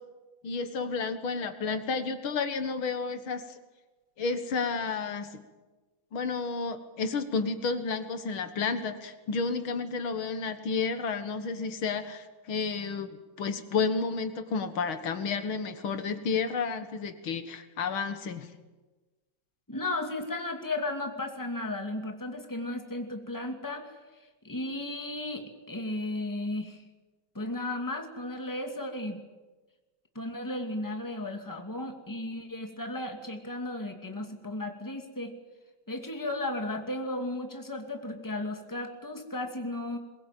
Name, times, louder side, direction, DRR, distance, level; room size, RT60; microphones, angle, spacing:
voice 1, 0.4-3.6 4.2-5.3 6.1-18.5, left 4 dB, 80° left, 9 dB, 2.4 m, -31 dB
voice 2, 19.7-23.9 24.4-26.8 27.3-29.2 30.1-35.3 35.9-40.0, left 2 dB, 10° left, 4 dB, 2.3 m, -35 dB
22.0 x 21.5 x 9.2 m, 1.2 s
omnidirectional pair, 2.2 m